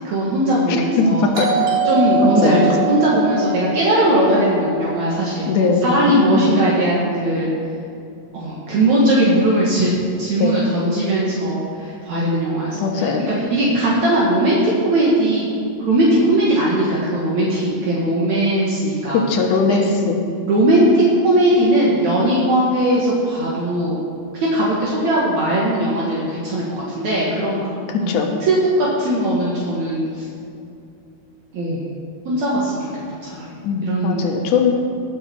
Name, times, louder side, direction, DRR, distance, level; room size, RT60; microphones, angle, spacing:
voice 1, 0.0-1.3 1.8-5.5 5.8-7.5 8.3-13.1 13.4-15.5 15.8-19.2 19.7-19.8 20.5-24.0 24.4-27.7 28.0-28.1 28.4-30.3 31.5-31.9 32.3-32.9 33.2-33.5 33.8-34.3, right 1 dB, 60° right, -6 dB, 2.9 m, -19 dB
voice 2, 0.7-1.5 2.2-3.0 5.5-5.9 6.3-6.5 10.4-10.6 12.7-13.2 19.1-20.3 27.9-28.3 33.6-34.7, left 4 dB, 75° left, 2 dB, 2.7 m, -20 dB
Doorbell, 1.3-5.9, right 3 dB, 45° right, 3.0 m, -24 dB
20.5 x 7.2 x 4.6 m, 2.5 s
omnidirectional pair, 3.7 m